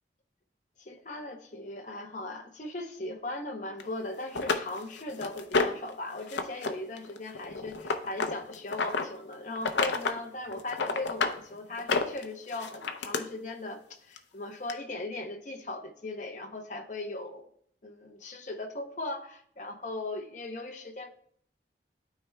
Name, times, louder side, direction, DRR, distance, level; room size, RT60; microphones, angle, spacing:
voice 1, 0.8-17.5 17.8-21.1, left 2 dB, 45° left, 0.7 m, -38 dB
sound 1, 3.8-3.9 4.3-5.9 6.3-6.7 7.0-9.0 9.5-10.2 10.5-11.4 11.8-13.2 14.2-14.3 14.7-14.8, left 4 dB, 85° left, 0.6 m, -29 dB
12.0 x 4.5 x 2.2 m
head